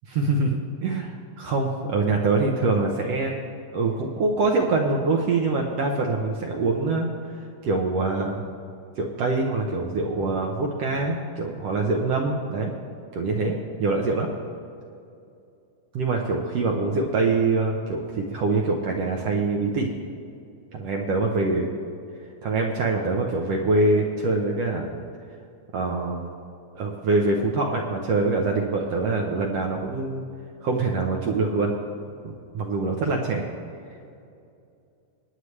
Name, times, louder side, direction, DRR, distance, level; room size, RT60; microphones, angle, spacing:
voice 1, 0.1-3.3 3.7-7.1 7.6-8.4 9.0-12.7 13.1-14.3 15.9-19.9 20.7-21.7 22.4-25.0 25.7-26.3 26.7-30.2 30.6-31.7 32.2-33.5, right 3 dB, 75° right, 0 dB, 1.5 m, -24 dB
24.5 x 9.6 x 3.3 m, 2.5 s
omnidirectional pair, 4.1 m